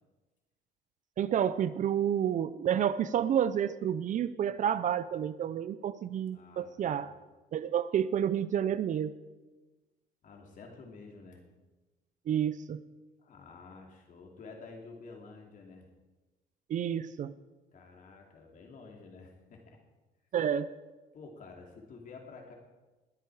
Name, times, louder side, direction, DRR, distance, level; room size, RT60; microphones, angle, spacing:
voice 1, 1.2-7.1 7.5-9.1 12.3-12.8 16.7-17.3 20.3-20.7, right 9 dB, 50° right, 15 dB, 0.6 m, -30 dB
voice 2, 6.3-7.1 10.2-11.4 13.2-15.9 17.7-19.8 21.1-22.5, left 4 dB, 50° left, 1 dB, 3.0 m, -50 dB
21.0 x 8.4 x 4.8 m, 1.2 s
cardioid pair, 110°, 17 cm